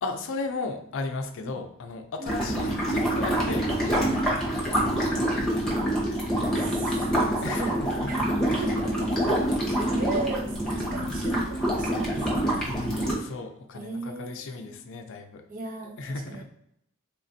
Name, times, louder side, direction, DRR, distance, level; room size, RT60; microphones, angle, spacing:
voice 1, 0.0-5.2 7.2-8.7 12.7-15.4 16.0-16.4, left 3 dB, 60° left, 5 dB, 0.4 m, -36 dB
sound 1, 2.2-13.1, right 1 dB, ahead, 0.9 m, -26 dB
voice 2, 2.2-2.7 5.1-5.5 6.6-7.0 7.4-7.8 8.1-8.2 8.6-9.2 9.4-9.5 9.9-12.7 13.7-14.7 15.5-16.4, right 3 dB, 40° right, 4 dB, 0.4 m, -36 dB
3.5 x 2.4 x 2.6 m, 0.76 s
head